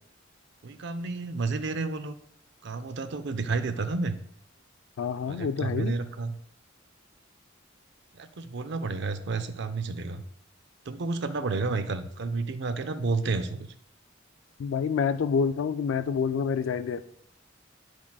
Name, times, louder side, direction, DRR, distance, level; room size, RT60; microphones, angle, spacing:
voice 1, 0.6-2.2 2.6-4.2 5.3-6.3 8.1-10.2 10.9-13.7, right 3 dB, 60° right, 11 dB, 0.5 m, -31 dB
voice 2, 5.0-5.9 14.6-17.0, left 6 dB, 75° left, 12 dB, 0.3 m, -27 dB
8.6 x 6.1 x 2.3 m, 0.66 s
head